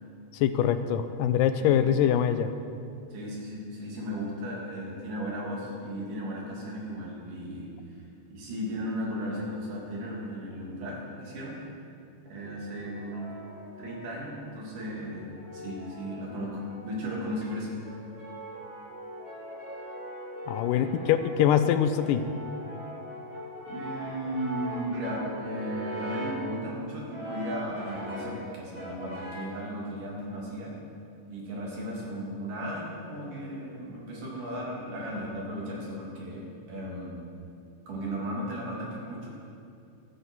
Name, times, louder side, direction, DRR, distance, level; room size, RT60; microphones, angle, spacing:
voice 1, 0.3-2.5 20.5-22.2, left 9 dB, 90° left, 10 dB, 2.3 m, -24 dB
voice 2, 3.1-7.7 8.3-11.6 12.2-13.3 13.8-17.7 20.8-21.2 23.7-30.8 31.3-37.2 37.9-39.3, equal, 75° right, -4 dB, 4.2 m, -36 dB
Brass instrument, 12.4-14.4 15.1-17.2 17.8-26.5 27.1-28.4 28.7-29.6, right 1 dB, 5° right, 3.6 m, -41 dB
14.0 x 13.5 x 4.6 m, 2.4 s
omnidirectional pair, 3.7 m